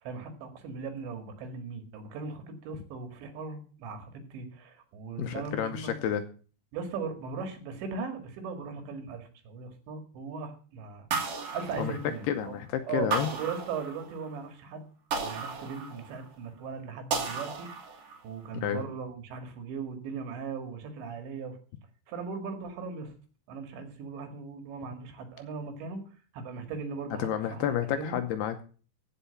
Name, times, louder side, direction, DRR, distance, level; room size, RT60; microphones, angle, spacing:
voice 1, 0.0-6.0 6.7-12.6 12.9-14.9 15.2-17.7 18.2-21.6 22.1-23.1 23.5-26.0 26.3-28.2, right 5 dB, 75° right, 7 dB, 4.1 m, -38 dB
voice 2, 5.2-6.2 11.8-12.0 12.3-13.3 18.6-18.8 27.2-28.6, left 10 dB, 75° left, 8 dB, 2.5 m, -30 dB
sound 1, 11.1-12.5 13.1-14.3 15.1-16.3 17.1-18.3, right 4 dB, 55° right, 2.9 m, -34 dB
15.5 x 5.6 x 6.9 m, 0.39 s
omnidirectional pair, 5.2 m